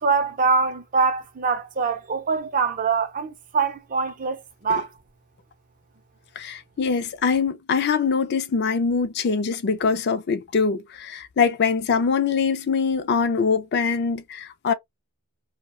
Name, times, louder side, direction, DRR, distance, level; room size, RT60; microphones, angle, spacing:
voice 1, 0.0-4.9, right 4 dB, 35° right, 0.5 m, -24 dB
voice 2, 6.4-14.7, left 5 dB, 50° left, 0.4 m, -23 dB
2.3 x 2.1 x 2.9 m
head